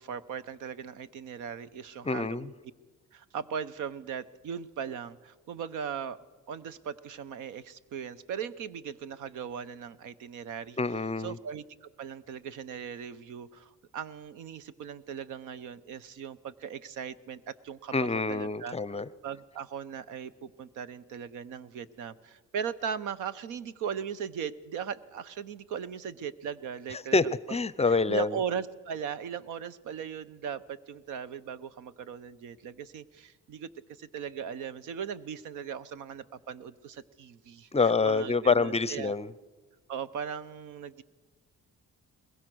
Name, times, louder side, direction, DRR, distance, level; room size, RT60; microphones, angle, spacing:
voice 1, 0.0-2.5 3.1-6.2 6.5-10.8 11.2-18.7 19.2-27.2 27.5-27.6 27.9-39.1 39.9-41.0, right 7 dB, 85° right, 16 dB, 0.9 m, -38 dB
voice 2, 2.0-2.5 10.8-11.4 17.9-19.1 26.9-27.2 27.5-28.4 37.7-39.3, left 4 dB, 20° left, 18 dB, 0.6 m, -26 dB
21.5 x 21.0 x 6.2 m, 1.3 s
cardioid pair, 90°, 30 cm